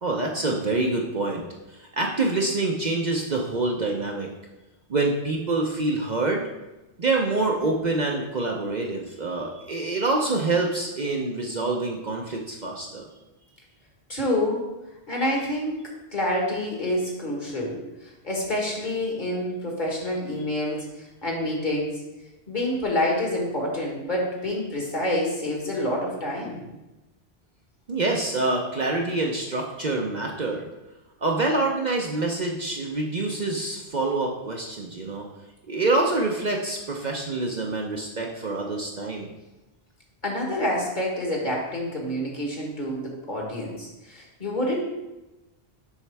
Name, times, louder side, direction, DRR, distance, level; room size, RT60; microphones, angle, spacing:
voice 1, 0.0-4.3 4.9-6.4 7.0-13.1 27.9-30.7 31.2-35.3 35.7-39.3, right 2 dB, 45° right, 0 dB, 0.7 m, -26 dB
voice 2, 14.1-14.6 15.1-15.8 16.1-17.8 18.2-22.0 22.5-26.6 40.2-44.9, left 1 dB, 45° left, -1 dB, 1.6 m, -27 dB
7.2 x 5.6 x 3.4 m, 1.0 s
omnidirectional pair, 1.1 m